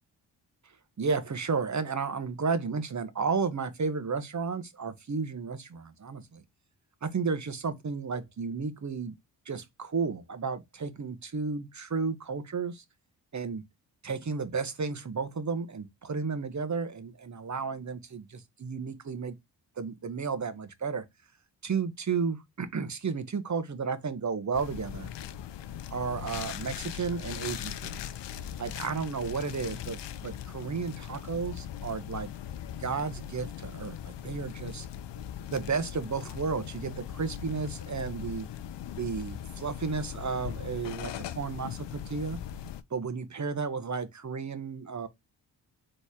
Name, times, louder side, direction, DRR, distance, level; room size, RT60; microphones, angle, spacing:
voice 1, 1.0-6.4 7.0-9.1 9.5-12.8 13.3-13.6 14.0-19.4 19.8-21.0 21.6-25.1 25.9-28.0 28.6-32.3 32.7-34.9 35.5-38.5 39.0-42.4 42.9-45.1, right 5 dB, 40° right, 1.1 m, -33 dB
sound 1, 24.5-42.8, left 10 dB, 70° left, 0.6 m, -40 dB
4.1 x 3.3 x 3.5 m
supercardioid pair, 45°, 44 cm